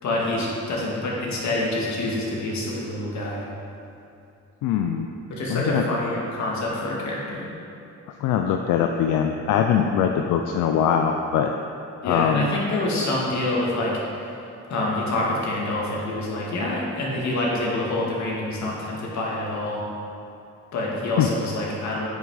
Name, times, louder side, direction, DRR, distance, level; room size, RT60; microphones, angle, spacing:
voice 1, 0.0-3.4 5.3-7.5 12.0-14.0 14.7-19.8 20.7-22.1, left 1 dB, 65° left, -4 dB, 2.2 m, -26 dB
voice 2, 4.6-5.1 5.5-5.8 8.2-11.5 12.0-12.5 21.2-21.3, left 8 dB, 90° left, 4 dB, 0.5 m, -22 dB
9.2 x 6.0 x 4.8 m, 2.7 s
cardioid pair, 90°, 30 cm